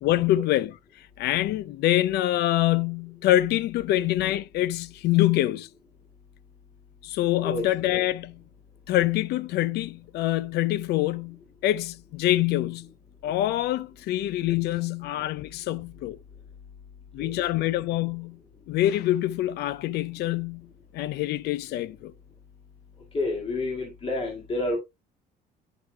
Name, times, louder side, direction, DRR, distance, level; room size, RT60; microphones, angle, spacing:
voice 1, 0.0-5.7 7.0-8.4 8.9-12.9 13.2-16.2 17.1-18.4 18.7-20.7 20.9-22.1, left 14 dB, 75° left, 0.5 m, -25 dB
voice 2, 23.1-24.8, left 2 dB, 35° left, 2.1 m, -29 dB
10.5 x 4.9 x 2.3 m
cardioid pair, 110°, 17 cm